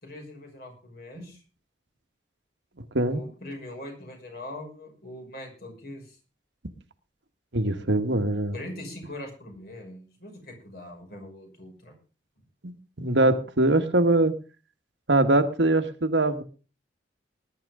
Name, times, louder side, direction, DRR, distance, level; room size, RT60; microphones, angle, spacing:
voice 1, 0.0-1.4 3.1-6.2 8.5-11.9 13.6-14.0, left 1 dB, 50° left, 2 dB, 5.9 m, -42 dB
voice 2, 7.5-8.6 12.6-14.3 15.1-16.4, right 2 dB, 70° right, 8 dB, 1.4 m, -23 dB
19.5 x 11.0 x 3.7 m, 0.35 s
head